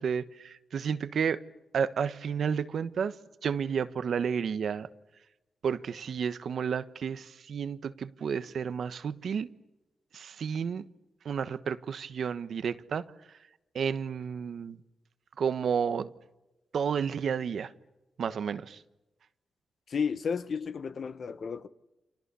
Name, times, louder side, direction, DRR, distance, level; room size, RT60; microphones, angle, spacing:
voice 1, 0.0-1.4 1.7-3.2 3.4-4.9 5.6-9.5 10.1-10.8 11.2-13.1 13.7-14.8 15.4-16.1 16.7-17.7 18.2-18.8, right 7 dB, 75° right, 1.2 m, -31 dB
voice 2, 19.9-21.7, left 6 dB, 60° left, 1.3 m, -32 dB
30.0 x 26.5 x 7.0 m
cardioid pair, 95°, 0 cm